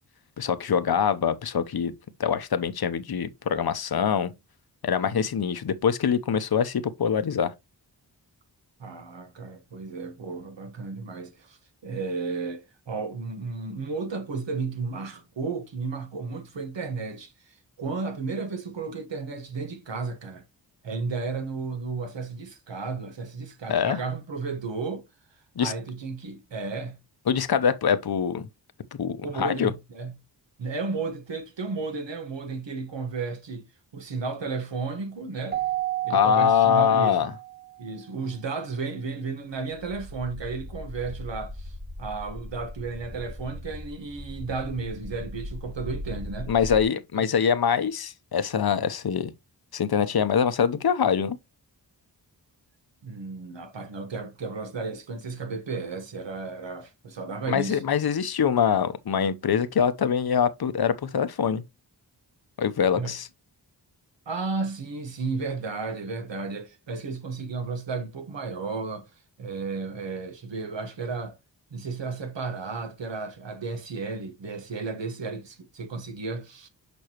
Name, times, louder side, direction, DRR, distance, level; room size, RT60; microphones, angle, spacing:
voice 1, 0.4-1.9 2.2-4.3 4.8-7.5 23.7-24.0 25.6-25.7 27.3-28.5 28.9-29.7 36.1-37.3 46.5-49.3 49.7-51.4 57.5-61.6 62.6-63.3, left 7 dB, 60° left, 0.8 m, -24 dB
voice 2, 8.8-20.4 20.8-25.1 25.6-27.0 29.2-30.1 30.6-33.7 33.9-35.6 36.0-37.3 37.8-46.5 47.1-47.2 53.0-57.8 62.9-63.1 64.2-69.1 69.4-71.4 71.7-76.7, right 4 dB, 85° right, 1.5 m, -33 dB
Keyboard (musical), 35.5-37.8, right 15 dB, 25° right, 0.5 m, -31 dB
sound 1, 39.7-46.8, left 1 dB, 10° right, 0.9 m, -39 dB
6.9 x 5.3 x 3.0 m
wide cardioid pair, 75°, 43 cm